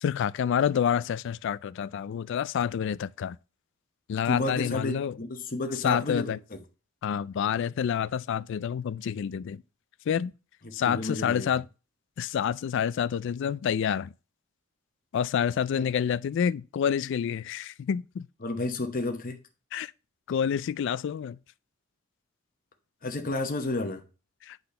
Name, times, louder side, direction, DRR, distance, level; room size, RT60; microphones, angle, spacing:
voice 1, 0.0-3.4 4.1-5.2 5.8-6.4 7.0-9.6 10.1-10.3 10.7-11.6 12.2-14.1 15.1-18.3 19.7-19.9 20.3-21.4 24.4-24.6, left 8 dB, 60° left, 0.3 m, -28 dB
voice 2, 4.2-6.6 10.6-11.5 15.7-15.8 18.4-19.4 23.0-24.0, left 2 dB, 45° left, 0.9 m, -31 dB
8.5 x 4.1 x 5.4 m
head